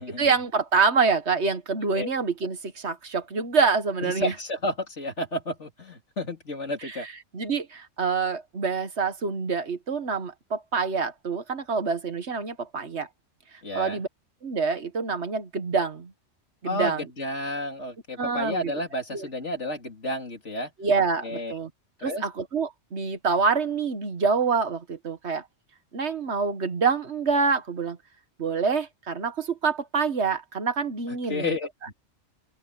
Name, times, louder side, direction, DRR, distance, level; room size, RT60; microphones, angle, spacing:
voice 1, 0.2-4.3 6.8-6.9 7.3-13.1 13.7-14.1 14.4-16.1 16.6-17.0 18.2-18.7 19.1-19.3 20.8-21.7 22.0-25.4 25.9-28.0 28.4-31.5, right 5 dB, 60° right, 1.6 m, -26 dB
voice 2, 4.0-7.1 13.6-14.0 16.6-20.7 21.2-21.6 22.0-22.3 31.1-31.9, left 1 dB, 65° left, 3.4 m, -31 dB
open air
omnidirectional pair, 1.3 m